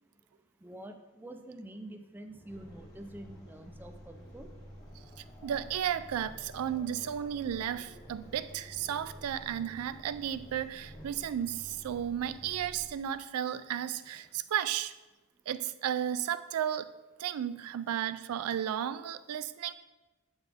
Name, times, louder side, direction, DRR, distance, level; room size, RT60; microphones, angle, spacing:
voice 1, 0.6-4.5, right 1 dB, 10° right, 6 dB, 0.4 m, -47 dB
Growling, 2.3-11.3 12.6-12.8 13.2-14.4, equal, 35° left, 1.5 m, -58 dB
sound 1, 2.5-12.9, equal, 15° left, 1.7 m, -51 dB
voice 2, 5.2-14.9 15.5-16.9 17.2-19.7, right 9 dB, 85° right, 14 dB, 0.3 m, -34 dB
7.9 x 5.9 x 3.4 m, 1.1 s
head